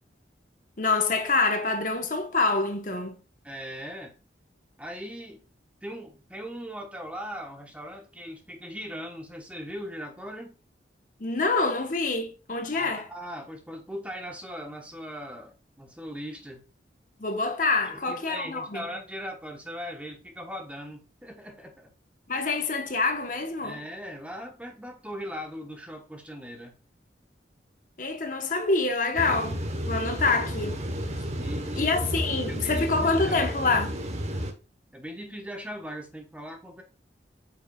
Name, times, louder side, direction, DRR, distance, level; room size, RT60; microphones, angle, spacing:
voice 1, 0.8-3.2 11.2-13.0 17.2-18.8 22.3-23.8 28.0-29.6 29.8-30.8 31.8-34.0, left 3 dB, 45° left, 1.1 m, -26 dB
voice 2, 3.4-4.1 4.8-5.4 5.8-10.5 12.7-16.6 17.8-21.9 23.6-26.7 31.3-31.9 32.5-33.4 34.9-36.8, equal, 5° right, 1.1 m, -39 dB
sound 1, 29.2-34.5, equal, 35° right, 1.1 m, -32 dB
8.9 x 5.9 x 2.4 m
head